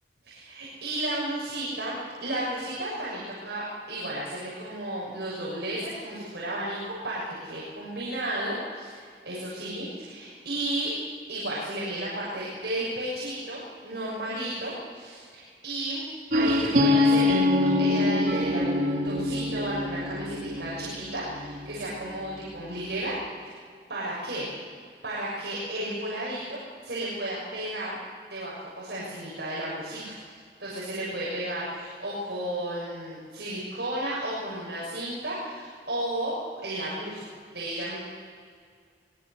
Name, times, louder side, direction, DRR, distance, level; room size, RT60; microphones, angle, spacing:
voice 1, 0.2-10.9 11.3-16.0 16.3-23.1 23.4-23.5 23.9-24.5 25.0-28.0 28.3-37.3 37.5-38.1, right 1 dB, 70° right, -7 dB, 6.8 m, -33 dB
sound 1, 16.3-22.1, left 2 dB, 50° right, 3.0 m, -25 dB
24.5 x 20.5 x 6.8 m, 2.1 s
head